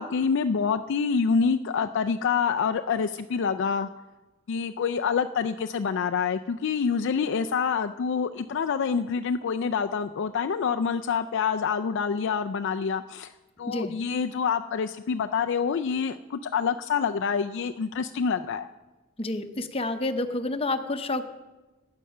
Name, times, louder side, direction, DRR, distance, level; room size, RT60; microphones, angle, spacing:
voice 1, 0.0-3.9 4.5-13.3 13.6-18.7, left 6 dB, 55° left, 7 dB, 0.3 m, -27 dB
voice 2, 19.2-21.2, left 2 dB, 25° left, 8 dB, 0.7 m, -29 dB
15.0 x 9.7 x 5.5 m, 1.1 s
head